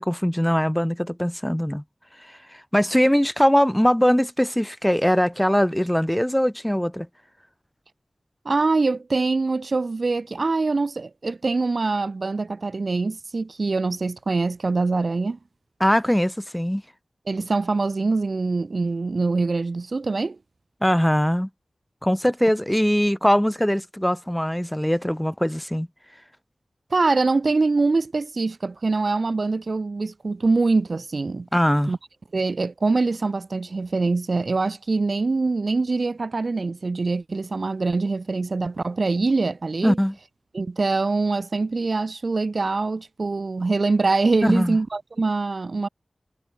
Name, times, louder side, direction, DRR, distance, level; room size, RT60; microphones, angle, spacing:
voice 1, 0.0-1.8 2.7-7.1 15.8-16.8 20.8-21.5 22.0-25.9 31.5-31.9 39.8-40.1 44.4-44.8, equal, 5° left, 3.6 m, -21 dB
voice 2, 8.5-15.4 17.3-20.4 26.9-31.5 31.9-32.0 32.3-40.0 40.5-45.9, right 3 dB, 55° right, 1.9 m, -24 dB
wide cardioid pair, 90°, 0 cm